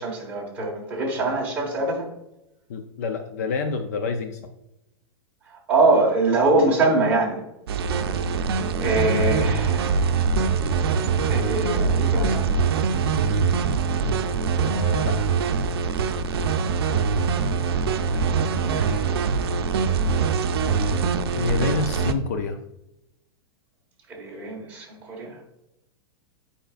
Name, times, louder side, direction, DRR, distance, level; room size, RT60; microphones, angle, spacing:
voice 1, 0.0-2.1 5.5-7.4 8.3-10.1 11.3-12.5 17.8-19.2 24.1-25.4, right 2 dB, 10° right, -3 dB, 1.3 m, -24 dB
voice 2, 2.7-4.5 9.1-9.5 14.6-15.3 21.3-22.6, left 4 dB, 40° left, 7 dB, 0.4 m, -28 dB
sound 1, 7.7-22.1, right 5 dB, 70° right, 0.6 m, -23 dB
8.8 x 5.0 x 2.4 m, 0.87 s
supercardioid pair, 175°, 13 cm